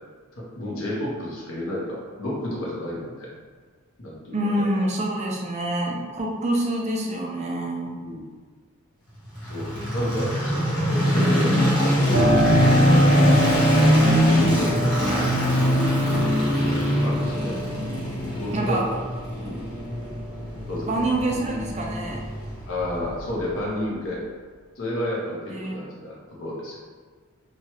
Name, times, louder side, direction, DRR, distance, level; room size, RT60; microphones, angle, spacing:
voice 1, 0.4-3.3 4.0-4.6 8.0-8.3 9.5-13.6 14.0-16.4 17.0-17.6 18.4-19.0 19.3-19.7 20.7-21.0 22.7-24.2 24.8-26.1 26.4-26.8, left 1 dB, 80° left, -4 dB, 0.8 m, -31 dB
voice 2, 4.3-7.9 18.5-18.8 20.9-22.2 25.5-25.8, right 1 dB, 35° right, -1 dB, 0.4 m, -26 dB
sound 1, 9.4-23.5, equal, 55° left, 1.1 m, -22 dB
Piano, 12.1-20.6 21.0-22.0, equal, 75° right, 0.8 m, -28 dB
2.9 x 2.3 x 2.9 m, 1.5 s
head